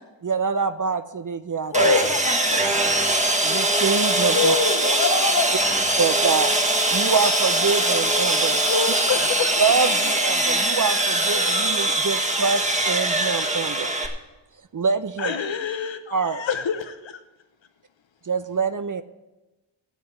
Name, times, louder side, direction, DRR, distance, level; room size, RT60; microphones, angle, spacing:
voice 1, 0.2-1.9 3.4-4.6 6.0-8.6 9.6-13.9 14.7-15.4 16.1-16.4 18.3-19.0, right 5 dB, 40° right, 12 dB, 0.6 m, -25 dB
voice 2, 1.7-3.1 4.3-5.6 7.0-7.2 7.6-7.7, left 3 dB, 40° left, 4 dB, 2.1 m, -24 dB
Sawing, 1.7-14.1, right 1 dB, 15° right, 1.5 m, -22 dB
voice 3, 8.6-9.6 10.6-10.7 15.2-17.2, left 6 dB, 70° left, 8 dB, 0.9 m, -28 dB
9.3 x 7.8 x 8.3 m, 1.1 s
wide cardioid pair, 75°, 47 cm